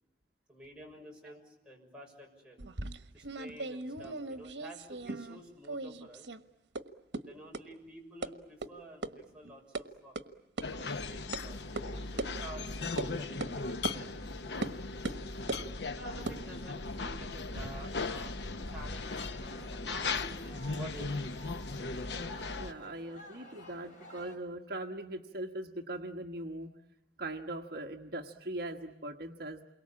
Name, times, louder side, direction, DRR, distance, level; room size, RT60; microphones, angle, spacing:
voice 1, 0.5-2.6 3.1-6.3 7.1-10.2 10.6-14.7 16.0-18.4 18.6-21.3, right 1 dB, 5° right, -2 dB, 6.3 m, -50 dB
sound 1, 2.6-5.4 5.6-6.4 6.7-6.8 7.1-7.2 7.5-7.6 8.2-8.3 8.6-8.7 9.0-9.1 9.4-9.8 10.2-10.3 10.6-10.7 11.3-11.4 11.8-11.9 12.2-12.3 13.0-13.1 13.4-13.5 13.8-14.0 14.6-14.7 15.0-15.7 16.2-17.7, right 2 dB, 85° right, 1.4 m, -38 dB
sound 2, 10.6-22.7, left 3 dB, 70° left, 0.9 m, -38 dB
sound 3, 19.4-24.4, equal, 45° left, 5.3 m, -52 dB
voice 2, 22.6-26.7 27.2-29.6, right 1 dB, 60° right, 3 dB, 1.4 m, -40 dB
29.0 x 23.0 x 8.6 m, 0.93 s
head